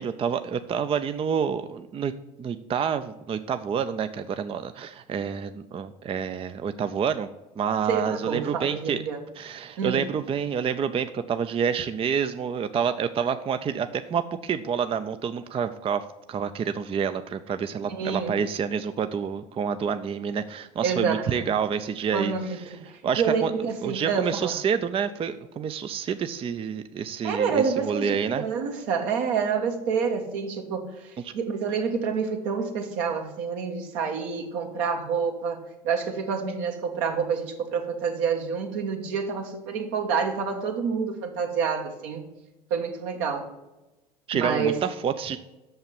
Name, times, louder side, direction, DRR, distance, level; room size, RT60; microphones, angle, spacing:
voice 1, 0.0-2.1 2.4-7.3 7.6-9.0 9.4-23.5 23.8-28.4 31.2-31.3 44.3-45.4, right 7 dB, 30° right, 10 dB, 0.5 m, -28 dB
voice 2, 7.9-9.2 9.8-10.1 17.9-18.3 20.8-21.5 22.1-24.5 27.2-35.6 35.8-42.2 42.7-43.5 44.3-44.8, right 6 dB, 70° right, 3 dB, 1.5 m, -28 dB
6.6 x 5.6 x 7.1 m, 1.0 s
hypercardioid pair, 75°, 20 cm